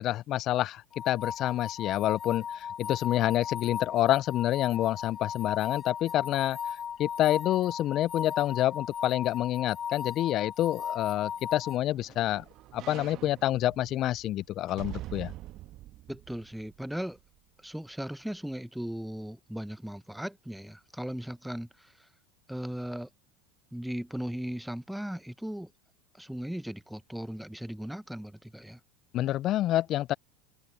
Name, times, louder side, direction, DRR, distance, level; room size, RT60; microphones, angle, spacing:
voice 1, 0.0-6.6 7.0-12.4 12.7-15.3 29.1-30.1, left 14 dB, 50° left, 0.4 m, -28 dB
sound 1, 0.9-11.8, left 8 dB, 35° left, 0.9 m, -36 dB
sound 2, 11.1-17.4 17.8-17.9, right 15 dB, 50° right, 1.3 m, -46 dB
voice 2, 16.1-17.2 17.6-22.1 22.5-23.1 23.7-25.7 26.2-28.8, equal, ahead, 0.9 m, -37 dB
hypercardioid pair, 90°, 0 cm